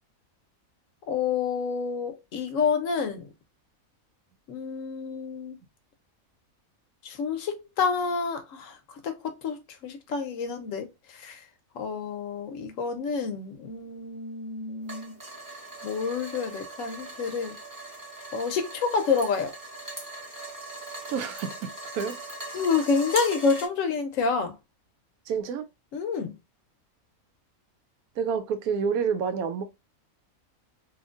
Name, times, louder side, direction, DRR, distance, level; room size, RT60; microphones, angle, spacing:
voice 1, 1.1-3.2 4.5-5.6 7.0-8.8 9.0-9.6 9.8-10.9 11.2-11.4 11.8-15.1 15.8-17.6 18.3-19.5 22.5-24.5 25.9-26.3, left 5 dB, 70° left, 0.9 m, -28 dB
sound 1, 14.8-23.7, right 2 dB, 20° right, 0.5 m, -40 dB
voice 2, 21.1-22.2 22.8-22.9 25.3-25.7 28.2-29.6, right 6 dB, 85° right, 1.0 m, -29 dB
2.9 x 2.5 x 2.4 m
omnidirectional pair, 1.5 m